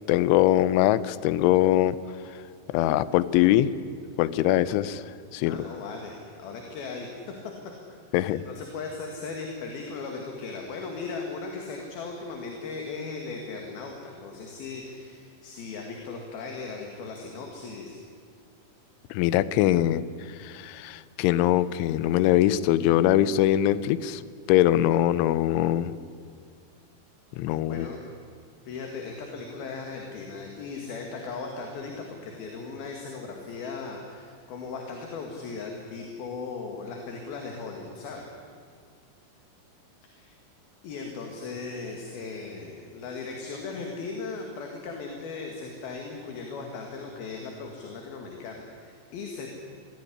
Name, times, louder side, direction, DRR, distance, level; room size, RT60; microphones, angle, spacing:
voice 1, 0.1-2.0 2.7-3.7 4.2-5.6 8.1-8.4 19.1-20.0 20.4-24.2 24.5-26.0 27.4-27.9, left 13 dB, 85° left, 16 dB, 3.2 m, -22 dB
voice 2, 5.4-7.3 8.1-18.0 27.6-28.0 28.7-38.3 40.0-40.3 40.8-49.5, left 4 dB, 60° left, 2 dB, 3.5 m, -37 dB
23.5 x 16.0 x 10.0 m, 2.2 s
omnidirectional pair, 5.4 m